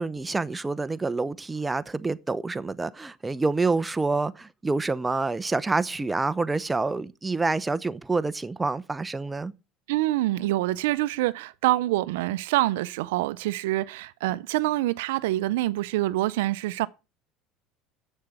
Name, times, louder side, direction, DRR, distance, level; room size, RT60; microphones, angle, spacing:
voice 1, 0.0-9.5, right 3 dB, 15° right, 0.8 m, -27 dB
voice 2, 9.9-16.9, right 17 dB, 85° right, 0.5 m, -26 dB
7.9 x 6.7 x 8.1 m
supercardioid pair, 95°, 0 cm